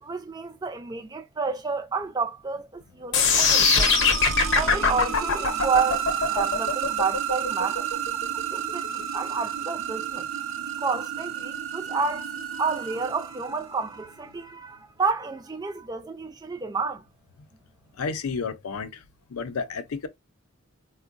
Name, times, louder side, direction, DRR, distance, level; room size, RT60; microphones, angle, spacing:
voice 1, 0.0-3.9 4.5-7.9 8.5-10.3 10.8-12.3 12.5-17.0, right 4 dB, 20° right, 0.4 m, -30 dB
sound 1, 3.1-9.2, left 4 dB, 55° left, 0.7 m, -22 dB
sound 2, 3.3-14.0, right 8 dB, 70° right, 0.6 m, -31 dB
voice 2, 18.0-19.0 19.3-20.1, left 5 dB, 90° left, 0.5 m, -31 dB
4.4 x 2.1 x 2.5 m
head